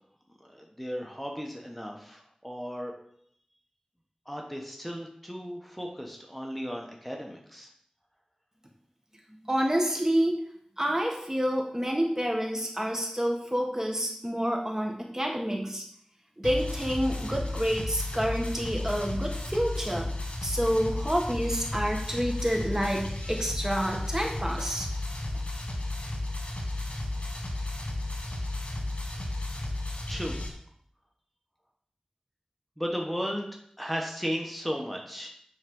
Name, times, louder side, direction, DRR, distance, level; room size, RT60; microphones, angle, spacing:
voice 1, 0.4-2.9 4.3-7.7 30.1-30.4 32.8-33.5 33.8-35.3, equal, ahead, 0 dB, 1.4 m, -35 dB
voice 2, 9.4-10.4 10.8-15.8 16.4-20.1 20.4-24.9, equal, 25° right, 1 dB, 1.4 m, -28 dB
sound 1, 16.4-30.5, left 1 dB, 70° left, 1.6 m, -33 dB
9.5 x 4.2 x 5.4 m, 0.68 s
wide cardioid pair, 50°, 2 cm